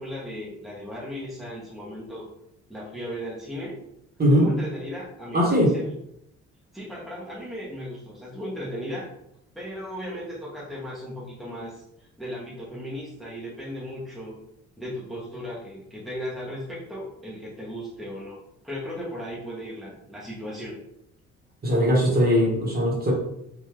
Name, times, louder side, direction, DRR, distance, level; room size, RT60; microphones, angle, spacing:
voice 1, 0.0-2.3 2.7-3.8 4.3-5.9 6.7-9.1 9.5-14.4 14.8-20.8, equal, ahead, -6 dB, 1.0 m, -36 dB
voice 2, 5.3-5.7 21.6-23.1, equal, 30° right, -2 dB, 1.5 m, -20 dB
3.7 x 2.6 x 3.1 m, 0.77 s
cardioid pair, 90°, 30 cm